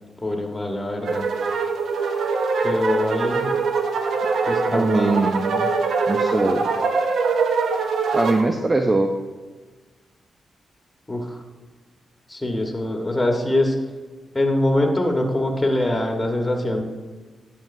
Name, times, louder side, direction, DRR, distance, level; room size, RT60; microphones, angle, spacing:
voice 1, 0.2-1.3 2.6-3.4 4.4-5.2 11.1-11.4 12.3-13.7 14.3-16.8, left 1 dB, 20° left, 2 dB, 1.3 m, -23 dB
sound 1, 1.0-8.4, right 4 dB, 75° right, 0.6 m, -23 dB
voice 2, 4.7-5.7 6.1-6.7 8.1-9.2, right 2 dB, 30° right, 4 dB, 0.6 m, -21 dB
9.4 x 7.2 x 2.7 m, 1.3 s
cardioid pair, 60°, 0 cm